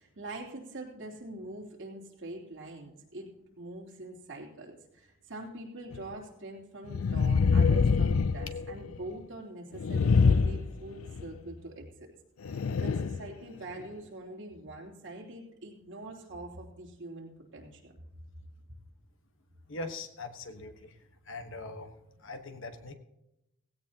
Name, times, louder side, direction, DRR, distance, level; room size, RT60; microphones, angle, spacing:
voice 1, 0.0-12.1 12.5-17.9, right 2 dB, 65° right, -1 dB, 3.1 m, -44 dB
sound 1, 5.9-6.0 6.9-9.0 9.7-11.3 12.4-13.3 13.8-13.9, left 5 dB, 80° left, 0.5 m, -25 dB
voice 2, 19.7-20.9 21.3-21.9 22.2-23.0, left 2 dB, 65° left, 7 dB, 1.2 m, -41 dB
16.5 x 16.5 x 2.9 m, 0.88 s
head